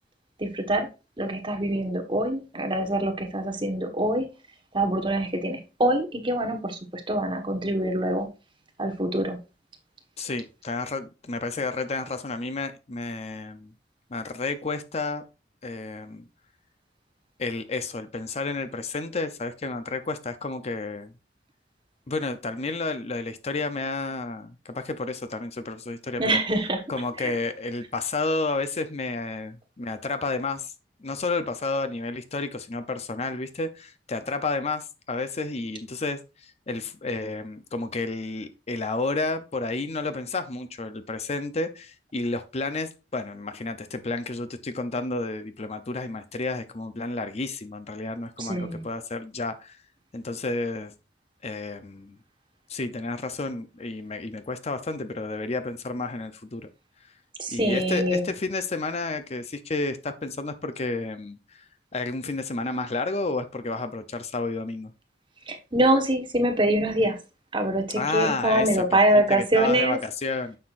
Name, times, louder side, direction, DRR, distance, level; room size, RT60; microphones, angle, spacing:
voice 1, 0.4-0.9 1.2-4.3 4.7-8.3 8.8-9.4 26.2-26.8 27.2-27.3 48.4-48.9 57.4-58.2 65.5-67.2 67.5-70.0, right 1 dB, 30° right, 1.4 m, -24 dB
voice 2, 10.2-13.7 14.1-15.2 15.6-16.2 17.4-21.1 22.1-26.4 26.9-30.7 31.0-49.8 50.1-50.9 51.4-52.2 52.7-56.7 57.5-61.7 61.9-64.9 67.9-69.0 69.3-70.6, left 3 dB, 35° left, 0.6 m, -31 dB
9.6 x 6.6 x 2.5 m
head